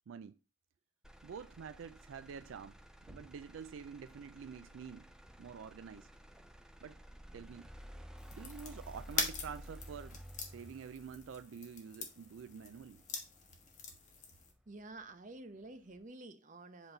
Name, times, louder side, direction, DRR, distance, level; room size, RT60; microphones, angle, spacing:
voice 1, 0.1-0.4 1.2-2.8 3.1-5.1 5.4-6.1 6.8-7.0 7.3-7.7 8.3-10.2 10.5-13.0, right 6 dB, 75° right, 0.4 m, -48 dB
Motor vehicle (road), 1.0-15.1 15.5-16.0, equal, 5° right, 0.4 m, -54 dB
sound 1, 8.2-14.5, left 5 dB, 35° left, 1.3 m, -43 dB
voice 2, 14.7-16.9, right 2 dB, 40° right, 0.7 m, -50 dB
7.9 x 3.9 x 3.9 m
head